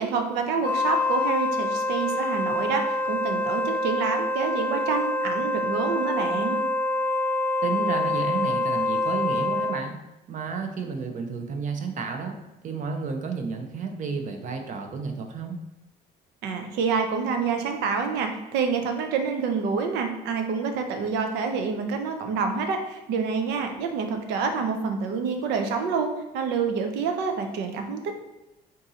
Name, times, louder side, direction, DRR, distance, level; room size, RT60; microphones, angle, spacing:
voice 1, 0.0-6.6 16.4-28.2, right 5 dB, 90° right, 5 dB, 0.6 m, -27 dB
Wind instrument woodwind instrument, 0.6-9.9, left 2 dB, 10° left, 0.8 m, -26 dB
voice 2, 7.6-10.0 10.3-12.4 12.6-15.6, right 5 dB, 50° right, 4 dB, 0.6 m, -31 dB
3.7 x 2.7 x 4.0 m, 0.97 s
cardioid pair, 110°, 17 cm